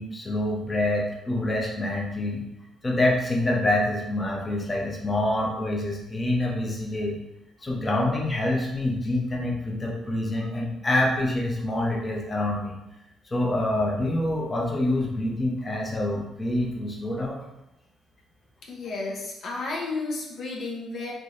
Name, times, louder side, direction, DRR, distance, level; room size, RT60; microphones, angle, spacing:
voice 1, 0.0-2.4 2.8-7.2 7.6-12.8 13.3-17.4, left 1 dB, 25° left, -1 dB, 0.7 m, -26 dB
voice 2, 18.6-21.1, left 3 dB, 60° left, -2 dB, 0.6 m, -32 dB
3.6 x 3.0 x 2.5 m, 0.91 s
cardioid pair, 90°, 0 cm